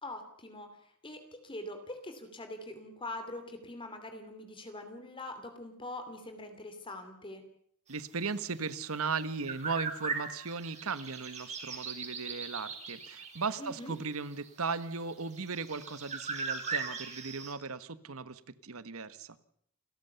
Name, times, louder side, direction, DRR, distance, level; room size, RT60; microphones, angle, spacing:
voice 1, 0.0-7.4 13.6-13.9, left 1 dB, 25° left, 7 dB, 2.8 m, -43 dB
voice 2, 7.9-19.4, right 4 dB, 65° right, 15 dB, 1.2 m, -37 dB
sound 1, 9.0-17.5, right 4 dB, 30° right, 3.9 m, -39 dB
28.5 x 13.5 x 6.9 m, 0.69 s
head